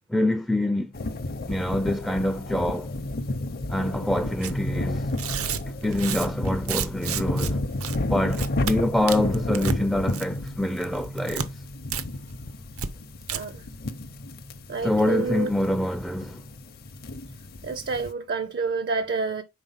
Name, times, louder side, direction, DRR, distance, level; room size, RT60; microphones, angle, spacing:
voice 1, 0.1-0.9 1.5-2.9 3.7-5.1 5.8-7.6 8.1-11.6 14.8-16.4, left 1 dB, ahead, 0.3 m, -26 dB
sound 1, 0.9-18.1, left 2 dB, 45° left, 0.6 m, -32 dB
Tearing, 4.4-4.6 5.1-7.5 7.8-8.0 8.3-8.7 9.1-9.8 10.1-10.5 10.8-11.5 11.9-12.0 12.3-12.4 12.8-12.9 13.2-13.4, right 7 dB, 85° right, 0.7 m, -31 dB
voice 2, 13.3-13.7 14.7-15.5 17.6-19.4, right 4 dB, 50° right, 0.5 m, -28 dB
5.0 x 3.9 x 5.6 m
head